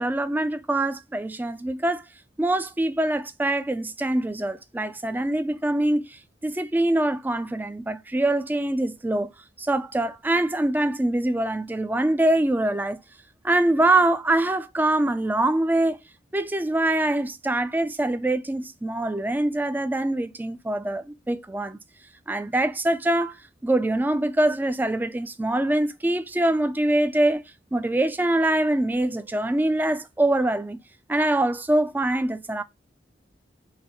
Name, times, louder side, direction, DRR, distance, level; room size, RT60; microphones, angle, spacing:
voice 1, 0.0-2.0 2.4-9.3 9.6-13.0 13.4-16.0 16.3-21.8 22.3-23.3 23.6-27.4 27.7-30.8 31.1-32.6, right 1 dB, 10° right, 0.3 m, -24 dB
3.9 x 2.6 x 4.2 m
head